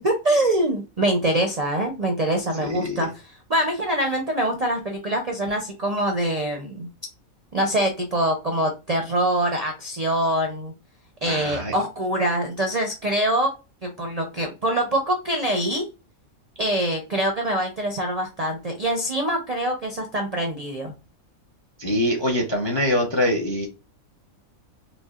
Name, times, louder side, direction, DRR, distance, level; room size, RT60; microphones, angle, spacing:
voice 1, 0.0-3.2 3.5-6.9 7.5-10.7 11.2-13.5 13.8-15.9 16.6-20.9, right 1 dB, 50° right, 3 dB, 0.5 m, -24 dB
voice 2, 2.5-3.1 11.3-11.7 21.8-23.7, left 1 dB, 35° left, 2 dB, 0.4 m, -24 dB
5.1 x 2.2 x 2.3 m, 0.30 s
omnidirectional pair, 1.4 m